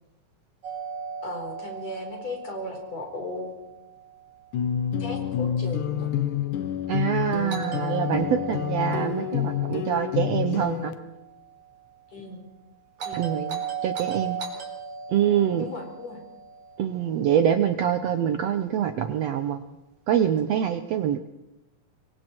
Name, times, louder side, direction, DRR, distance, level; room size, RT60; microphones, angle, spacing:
Doorbell, 0.6-4.6 7.5-11.7 13.0-17.4, right 6 dB, 55° right, 5.3 m, -37 dB
voice 1, 1.2-3.5 5.0-6.1 10.5-10.6 12.1-12.4 13.0-13.3 15.6-16.2, left 2 dB, 45° left, 2 dB, 5.4 m, -36 dB
sound 1, 4.5-10.9, left 10 dB, 70° left, 2.4 m, -28 dB
voice 2, 6.9-10.9 13.1-14.4 15.1-15.6 16.8-19.6 20.1-21.2, right 9 dB, 90° right, 9 dB, 1.4 m, -25 dB
26.0 x 22.5 x 4.5 m, 0.94 s
omnidirectional pair, 4.1 m